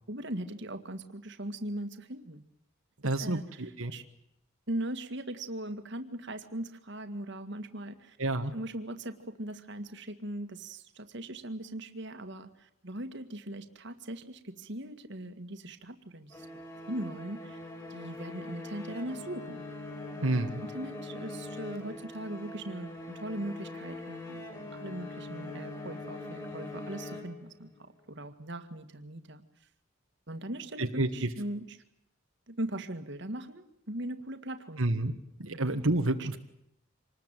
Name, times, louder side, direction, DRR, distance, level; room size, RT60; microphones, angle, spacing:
voice 1, 0.1-2.4 3.2-4.0 4.7-8.2 8.5-16.5 16.9-17.6 17.9-19.6 20.2-20.3 20.6-24.4 24.7-29.4 30.3-31.8 32.5-35.2 35.5-35.6 36.2-36.4, right 1 dB, 55° right, 8 dB, 2.0 m, -40 dB
voice 2, 3.0-3.9 8.2-8.5 20.2-20.6 30.8-31.3 34.8-35.1 35.4-36.4, right 2 dB, 80° right, 4 dB, 1.7 m, -29 dB
sound 1, 16.3-27.8, left 2 dB, 20° left, 6.4 m, -42 dB
26.5 x 20.5 x 9.2 m, 0.77 s
head